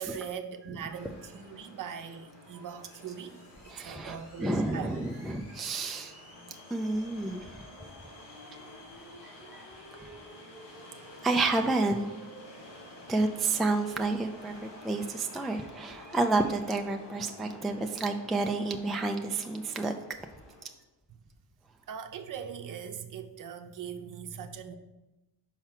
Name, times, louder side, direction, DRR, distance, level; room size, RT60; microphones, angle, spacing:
voice 1, 0.0-3.4 3.6-5.0 21.9-24.7, right 7 dB, 50° right, 7 dB, 0.7 m, -40 dB
sound 1, 0.9-20.7, left 1 dB, 85° left, 2.7 m, -50 dB
voice 2, 3.7-6.1 6.7-7.6 9.2-9.6 9.9-10.2 11.2-12.1 13.1-19.9, right 3 dB, ahead, 3 dB, 0.3 m, -30 dB
5.7 x 4.4 x 5.8 m, 1.0 s
cardioid pair, 110°, 41 cm